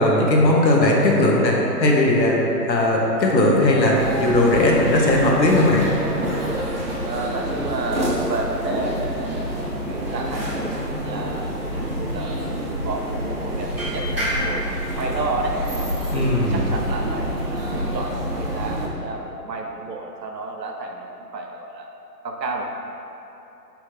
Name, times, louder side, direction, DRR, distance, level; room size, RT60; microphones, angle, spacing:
voice 1, 0.0-2.4 2.7-5.9 16.1-16.6, left 1 dB, 85° left, -2 dB, 1.0 m, -18 dB
sound 1, 3.9-18.9, equal, 40° right, 0.5 m, -27 dB
voice 2, 7.0-11.5 12.0-15.6 16.1-21.9 22.2-22.7, right 3 dB, 80° right, 2 dB, 0.8 m, -31 dB
4.9 x 3.1 x 3.2 m, 3.0 s
hypercardioid pair, 175°, 50 cm